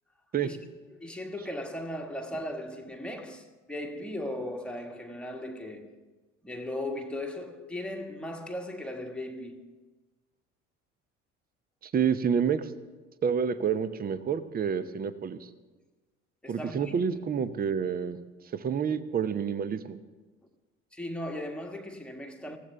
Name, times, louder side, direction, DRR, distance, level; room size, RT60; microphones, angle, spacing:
voice 1, 0.9-5.9 6.4-9.7 16.4-17.2 20.9-22.6, left 1 dB, 5° left, 1.6 m, -37 dB
voice 2, 11.8-12.7 13.2-15.4 16.5-18.2 18.5-20.0, right 7 dB, 25° right, 0.8 m, -28 dB
19.5 x 15.5 x 3.4 m
figure-of-eight pair, 60°, 38 cm